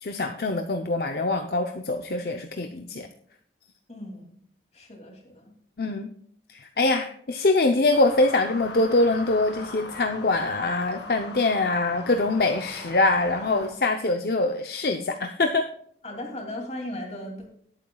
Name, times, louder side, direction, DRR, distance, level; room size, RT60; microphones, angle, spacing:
voice 1, 0.0-3.1 5.8-6.1 6.5-15.6, left 2 dB, 60° left, 5 dB, 0.7 m, -24 dB
voice 2, 3.9-4.4 4.7-5.5 16.0-17.5, left 1 dB, 35° left, 1 dB, 2.6 m, -37 dB
sound 1, 7.9-13.7, left 3 dB, 85° left, 2.1 m, -40 dB
18.0 x 9.0 x 2.3 m, 0.63 s
head